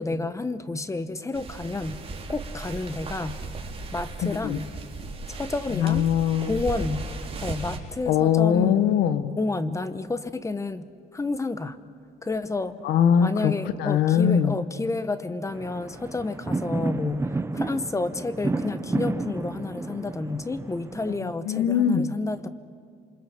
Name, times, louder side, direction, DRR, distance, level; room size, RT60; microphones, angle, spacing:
voice 1, 0.0-3.4 3.9-4.7 5.3-6.1 6.4-7.1 7.4-8.8 9.4-11.8 12.2-12.8 13.2-22.5, left 3 dB, 20° left, 12 dB, 1.1 m, -30 dB
sound 1, 1.3-7.8, right 3 dB, 35° right, 4.1 m, -36 dB
voice 2, 4.2-4.6 5.8-6.6 8.1-9.4 12.8-13.5 13.8-14.6 21.5-22.1, left 8 dB, 80° left, 11 dB, 1.3 m, -21 dB
sound 2, 15.5-21.2, right 3 dB, 15° right, 1.0 m, -31 dB
28.0 x 25.5 x 7.2 m, 2.3 s
cardioid pair, 110°, 17 cm